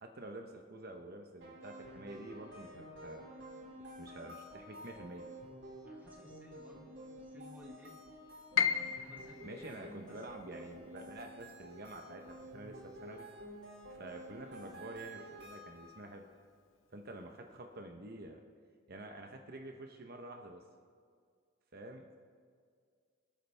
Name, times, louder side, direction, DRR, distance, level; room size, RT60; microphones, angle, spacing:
voice 1, 0.0-3.3 3.8-5.3 9.4-13.3 13.9-16.2 16.9-18.4 18.9-20.6 21.7-22.2, right 1 dB, 50° right, 3 dB, 0.9 m, -48 dB
sound 1, 1.4-16.1, right 1 dB, 65° right, 4.0 m, -51 dB
voice 2, 5.8-8.1 8.8-10.2 14.5-14.9, left 1 dB, 10° right, -1 dB, 1.5 m, -57 dB
Piano, 8.6-14.5 14.8-16.0 16.4-16.5 17.2-17.5, left 8 dB, 80° left, 0.6 m, -39 dB
25.5 x 8.7 x 3.4 m, 2.1 s
head